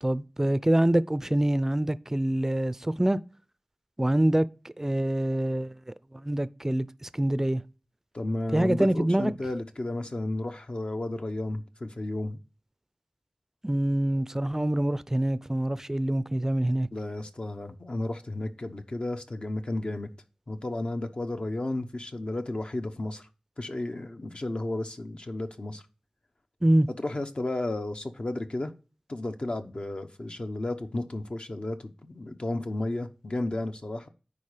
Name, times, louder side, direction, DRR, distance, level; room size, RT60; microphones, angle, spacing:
voice 1, 0.0-3.2 4.0-7.6 8.5-9.3 13.6-16.9 26.6-26.9, right 1 dB, 20° right, 0.4 m, -25 dB
voice 2, 8.1-12.4 16.9-20.1 20.5-23.3 23.6-25.8 27.0-28.7 29.1-34.1, left 2 dB, 55° left, 0.9 m, -33 dB
9.8 x 4.1 x 4.9 m
wide cardioid pair, 60°, 2 cm